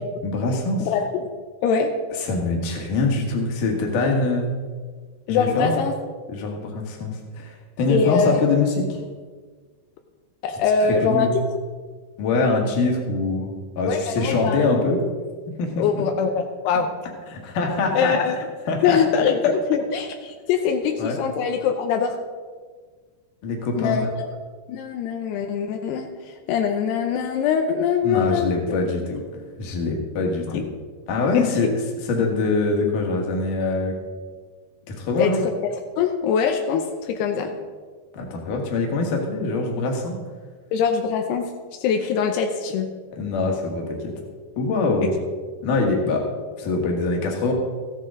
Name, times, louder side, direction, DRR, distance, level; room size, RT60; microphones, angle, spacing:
voice 1, 0.2-0.9 2.1-4.6 5.3-5.7 6.3-9.0 10.5-10.6 10.9-11.4 12.2-15.0 15.6-15.8 17.3-18.1 18.7-19.0 21.0-21.2 23.4-24.1 28.0-30.6 31.1-33.9 34.9-35.4 38.1-40.2 43.1-44.1 44.6-45.1 45.6-46.2 46.6-47.5, left 3 dB, 60° left, 1 dB, 2.9 m, -24 dB
voice 2, 0.8-1.3 1.6-1.9 5.3-5.9 7.9-8.4 10.4-11.3 13.8-14.7 15.8-16.9 17.9-18.4 18.8-22.2 23.8-24.3 24.7-26.1 26.5-28.5 30.5-30.6 31.3-31.5 35.2-35.5 36.0-37.5 40.7-41.5 41.8-42.9 45.0-45.1, left 6 dB, 85° left, 4 dB, 2.8 m, -22 dB
14.5 x 10.5 x 3.8 m, 1.5 s
omnidirectional pair, 4.7 m